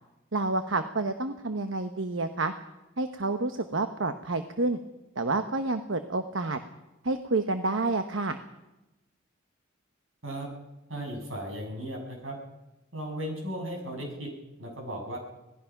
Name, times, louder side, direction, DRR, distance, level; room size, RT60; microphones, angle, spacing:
voice 1, 0.3-2.5 3.0-4.8 5.2-6.6 7.0-8.4, right 2 dB, 70° right, 8 dB, 1.1 m, -29 dB
voice 2, 10.9-12.4 12.9-14.3 14.6-15.2, right 1 dB, 90° right, 1 dB, 6.8 m, -36 dB
26.0 x 18.5 x 5.9 m, 1.0 s
head